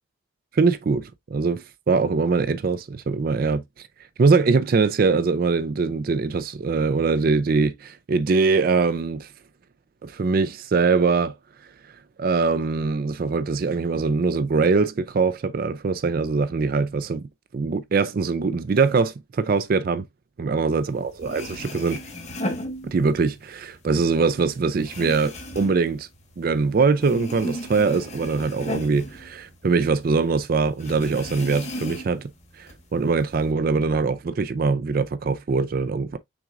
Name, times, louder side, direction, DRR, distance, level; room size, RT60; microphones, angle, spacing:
voice 1, 0.5-3.6 4.2-9.3 10.0-11.3 12.2-17.3 17.5-20.0 20.4-22.0 22.8-26.1 26.4-32.3 32.6-36.2, right 4 dB, 45° right, 0.4 m, -22 dB
sound 1, 20.9-21.0 21.2-23.4 23.8-26.7 27.0-30.0 30.2-30.3 30.8-32.3 32.7-33.4, left 1 dB, 35° left, 1.1 m, -35 dB
6.0 x 3.7 x 2.4 m
head